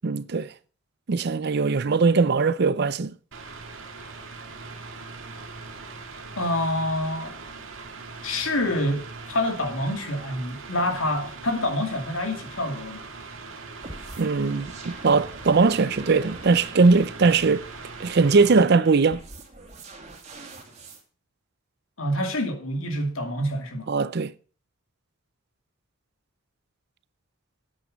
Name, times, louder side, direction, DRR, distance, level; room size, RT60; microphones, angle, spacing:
voice 1, 0.0-0.5 1.1-3.1 14.2-17.7 18.0-19.2 23.9-24.3, right 4 dB, 50° right, 0.5 m, -20 dB
Mechanical fan, 3.3-18.6, right 4 dB, 70° right, 1.9 m, -41 dB
voice 2, 6.4-7.3 8.2-13.1 22.0-23.9, left 1 dB, 75° left, 2.4 m, -27 dB
sound 1, 13.8-21.0, right 2 dB, 35° right, 2.4 m, -45 dB
9.4 x 8.7 x 5.3 m
head